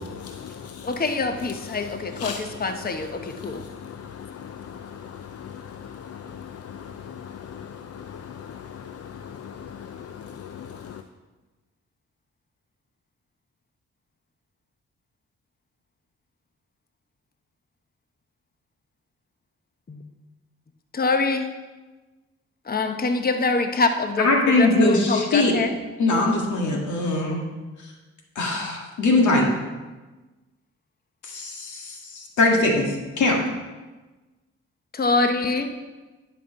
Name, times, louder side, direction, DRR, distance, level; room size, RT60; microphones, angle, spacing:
voice 1, 1.0-3.6 19.9-20.0 20.9-21.5 22.7-25.7 34.9-35.7, left 3 dB, 30° left, 7 dB, 0.9 m, -24 dB
voice 2, 3.4-11.0, left 8 dB, 55° left, 8 dB, 0.6 m, -39 dB
voice 3, 24.2-25.5 26.0-27.4 28.4-29.5 31.2-33.4, left 2 dB, 80° left, 0 dB, 1.9 m, -21 dB
10.5 x 5.4 x 5.5 m, 1.2 s
cardioid pair, 60°, 29 cm